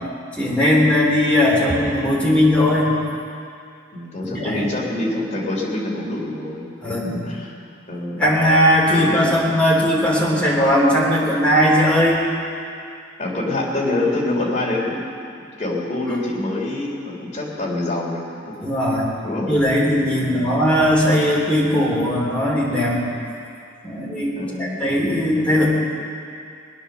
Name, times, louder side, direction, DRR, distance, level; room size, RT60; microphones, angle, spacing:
voice 1, 0.3-2.9 4.3-4.6 6.8-7.1 8.2-12.2 18.6-19.1 19.5-23.0 23.8-24.3 24.6-25.7, equal, 5° left, -5 dB, 3.3 m, -18 dB
voice 2, 3.9-7.5 7.9-8.3 8.9-9.4 13.2-15.0 15.4-18.6 19.2-19.5 20.2-20.6 24.4-24.9, left 2 dB, 35° left, -3 dB, 3.5 m, -26 dB
19.5 x 10.5 x 6.8 m, 2.4 s
head